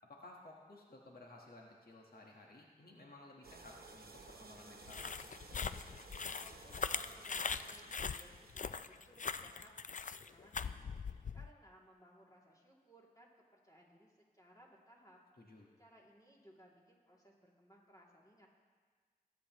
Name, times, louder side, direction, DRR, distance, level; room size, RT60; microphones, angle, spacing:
voice 1, 0.1-5.1 15.4-15.7, left 2 dB, 80° left, -1 dB, 1.4 m, -56 dB
sound 1, 3.4-8.9, right 3 dB, 90° right, 1.0 m, -56 dB
sound 2, 4.9-11.5, left 5 dB, 55° left, 0.4 m, -41 dB
voice 2, 6.4-9.9 10.2-15.2 15.8-18.5, equal, 25° left, -4 dB, 2.6 m, -63 dB
21.0 x 8.0 x 3.0 m, 1.5 s
wide cardioid pair, 50°, 15 cm